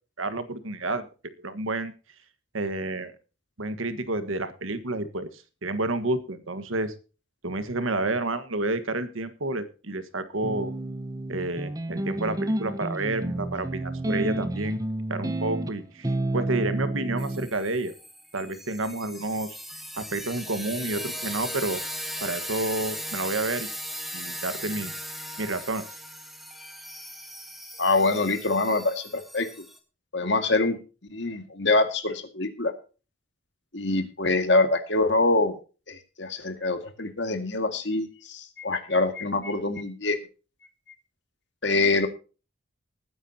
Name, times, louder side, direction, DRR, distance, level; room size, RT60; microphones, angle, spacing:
voice 1, 0.2-1.1 1.4-1.9 2.5-3.1 3.6-6.9 7.4-10.7 11.3-14.8 15.1-17.9 18.3-19.6 20.0-21.8 22.2-23.7 24.1-24.9 25.4-25.8, right 2 dB, 80° right, 11 dB, 1.6 m, -30 dB
sound 1, 10.4-17.5, right 1 dB, 15° right, 0.8 m, -30 dB
sound 2, 17.2-29.8, equal, ahead, 1.6 m, -38 dB
voice 2, 27.8-29.5 30.1-30.8 31.1-32.7 33.7-35.5 35.9-40.2 41.6-42.1, left 2 dB, 60° left, 8 dB, 2.1 m, -25 dB
20.5 x 9.6 x 2.9 m, 0.34 s
head